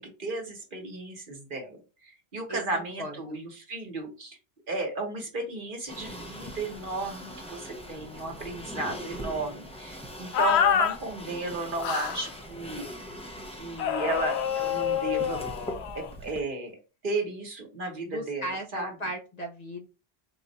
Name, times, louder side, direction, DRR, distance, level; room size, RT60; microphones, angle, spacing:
voice 1, 0.0-4.4 4.7-12.8 13.6-15.5 15.9-16.8 17.0-18.9, right 2 dB, 55° right, 2 dB, 1.2 m, -34 dB
voice 2, 2.5-3.4 18.1-19.9, right 1 dB, 45° left, 3 dB, 0.7 m, -37 dB
sound 1, 5.9-16.4, equal, 5° left, 0.6 m, -42 dB
sound 2, 10.3-11.0 11.8-12.3 13.8-16.1, left 9 dB, 85° left, 0.9 m, -27 dB
3.9 x 2.4 x 4.0 m, 0.32 s
omnidirectional pair, 1.1 m